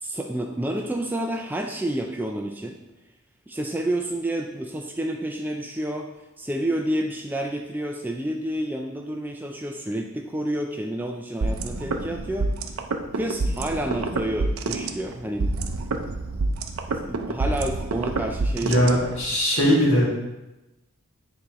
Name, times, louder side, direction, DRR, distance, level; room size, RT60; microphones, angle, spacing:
voice 1, 0.0-2.8 3.5-6.1 6.4-12.5 13.2-15.5 16.9-19.0, right 1 dB, 10° right, 2 dB, 0.3 m, -29 dB
sound 1, 11.4-19.4, right 3 dB, 75° right, 0.5 m, -28 dB
voice 2, 18.5-20.1, equal, 60° left, -5 dB, 2.2 m, -20 dB
9.4 x 4.2 x 3.0 m, 1.0 s
head